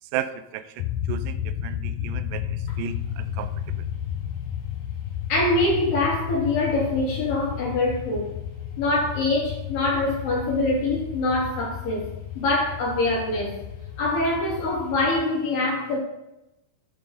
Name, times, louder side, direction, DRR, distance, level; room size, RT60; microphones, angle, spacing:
voice 1, 0.1-3.5, right 10 dB, 80° right, 11 dB, 2.0 m, -34 dB
sound 1, 0.8-15.3, left 10 dB, 85° left, 2.1 m, -32 dB
voice 2, 5.3-8.4 8.8-12.1 12.3-13.6 14.0-16.0, left 2 dB, 60° left, -4 dB, 5.1 m, -24 dB
11.0 x 8.7 x 4.1 m, 0.89 s
omnidirectional pair, 4.5 m